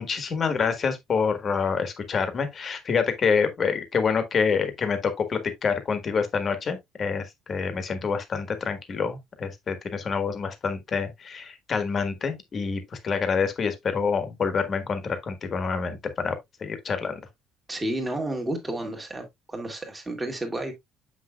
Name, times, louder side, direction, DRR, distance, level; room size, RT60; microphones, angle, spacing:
voice 1, 0.0-17.1, left 5 dB, 35° left, 1.4 m, -27 dB
voice 2, 17.7-20.7, right 1 dB, 10° right, 1.9 m, -31 dB
7.1 x 6.0 x 2.3 m
cardioid pair, 145°, 0 cm